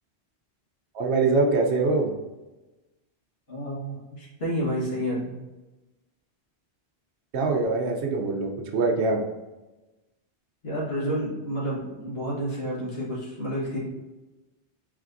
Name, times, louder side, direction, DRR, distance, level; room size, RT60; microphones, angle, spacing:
voice 1, 0.9-2.1 7.3-9.2, right 3 dB, 75° right, 2 dB, 1.0 m, -23 dB
voice 2, 3.5-5.3 10.6-13.8, equal, 60° left, -6 dB, 1.7 m, -30 dB
4.8 x 3.3 x 2.5 m, 1.1 s
omnidirectional pair, 1.1 m